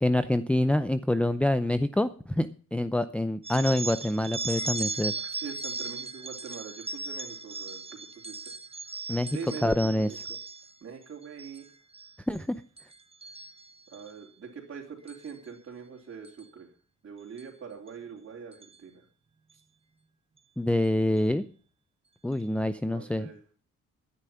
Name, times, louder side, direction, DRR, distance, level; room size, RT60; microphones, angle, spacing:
voice 1, 0.0-5.1 9.1-10.1 12.3-12.5 20.6-21.4 22.2-23.3, left 1 dB, 5° left, 10 dB, 0.6 m, -26 dB
sound 1, 3.4-10.7 11.2-11.6 11.9-12.4 12.8-14.1 15.1-15.3 16.3-16.4 17.4-17.5 17.9-18.0 18.5-18.8, right 4 dB, 20° right, 1.0 m, -37 dB
voice 2, 5.2-8.4 9.3-10.2 10.8-11.7 13.9-16.7 17.0-19.0 22.9-23.4, right 6 dB, 45° right, -3 dB, 3.6 m, -43 dB
13.0 x 10.0 x 5.8 m, 0.42 s
cardioid pair, 90°, 30 cm